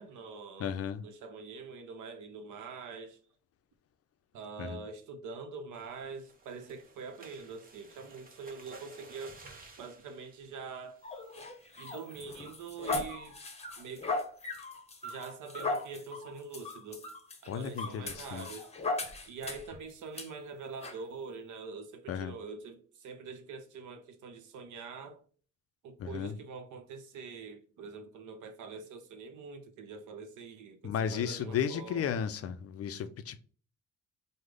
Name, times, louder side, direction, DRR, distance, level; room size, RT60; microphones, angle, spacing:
voice 1, 0.0-0.7 1.0-3.2 4.3-9.4 9.8-11.0 11.8-13.4 13.8-14.1 15.0-17.1 17.4-18.7 19.3-25.2 25.8-32.2, right 4 dB, 80° right, 0.7 m, -44 dB
voice 2, 0.6-1.0 4.6-4.8 17.5-18.5 19.0-19.1 22.1-22.3 26.0-26.4 30.8-33.4, left 8 dB, 50° left, 0.5 m, -34 dB
sound 1, 5.7-11.5 11.9-12.2 12.5-12.6 13.0-13.3, right 3 dB, 30° right, 0.8 m, -55 dB
sound 2, 11.0-19.7 20.1-20.3 20.8-21.0, left 3 dB, 20° left, 0.8 m, -38 dB
3.2 x 2.1 x 3.6 m
cardioid pair, 90°, 30 cm